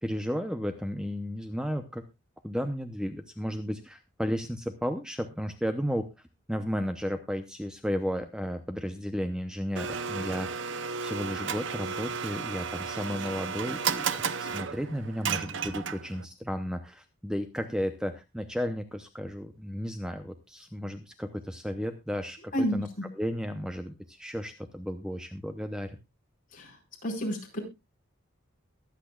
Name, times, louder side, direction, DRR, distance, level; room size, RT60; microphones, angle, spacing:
voice 1, 0.0-2.1 2.4-6.1 6.5-26.0, equal, 5° right, 8 dB, 0.7 m, -33 dB
Domestic sounds home sounds, 9.8-16.3, right 6 dB, 60° right, 0.7 m, -33 dB
voice 2, 22.5-22.8 26.5-26.7 27.0-27.6, equal, 40° left, 1 dB, 4.7 m, -29 dB
22.5 x 8.3 x 2.3 m, 0.24 s
head